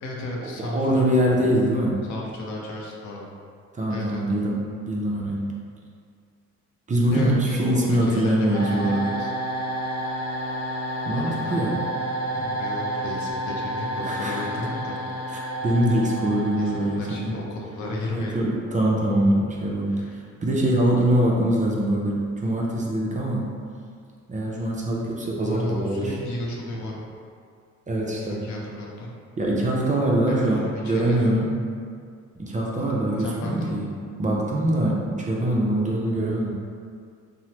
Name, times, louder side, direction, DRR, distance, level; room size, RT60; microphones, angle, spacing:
voice 1, 0.0-1.2 2.1-3.3 3.9-4.2 7.1-9.3 11.1-11.7 12.3-15.0 16.6-18.4 19.9-20.1 25.4-27.0 28.0-29.1 30.3-31.4 33.2-33.8, left 1 dB, 70° left, -2 dB, 0.6 m, -34 dB
voice 2, 0.6-2.0 3.7-5.4 6.9-9.2 11.1-11.8 14.0-14.4 15.3-17.4 18.1-20.0 20.4-23.5 24.3-26.1 27.9-28.4 29.4-31.5 32.4-33.9 34.2-36.6, right 1 dB, 25° right, -3 dB, 0.5 m, -23 dB
sound 1, 8.5-17.4, right 1 dB, 60° right, 0.7 m, -30 dB
3.0 x 2.0 x 2.8 m, 2.2 s
cardioid pair, 90°, 30 cm